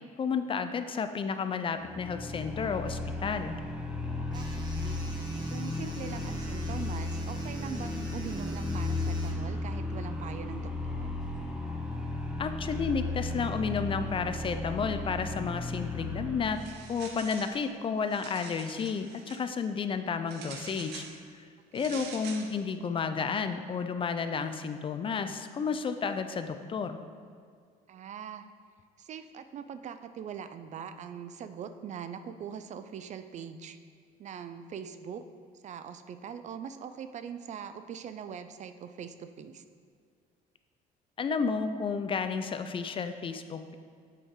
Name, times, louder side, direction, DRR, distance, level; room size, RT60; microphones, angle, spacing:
voice 1, 0.2-3.5 12.4-16.6 16.9-21.0 21.3-21.4 21.7-27.0 41.2-43.7, left 5 dB, 30° left, 9 dB, 0.4 m, -32 dB
sound 1, 1.8-16.6, left 2 dB, 5° right, 0.8 m, -35 dB
sound 2, 4.3-9.3, right 1 dB, 25° right, 1.2 m, -49 dB
voice 2, 4.3-5.0 5.5-11.2 21.7-22.1 27.9-28.5 29.0-33.8 34.2-35.2 35.6-39.6, right 7 dB, 45° right, 10 dB, 0.4 m, -42 dB
sound 3, 16.5-17.6 18.0-19.4 20.3-21.2 21.8-22.5, right 5 dB, 80° right, 0.8 m, -45 dB
7.8 x 4.8 x 3.6 m, 2.2 s
cardioid pair, 110°, 17 cm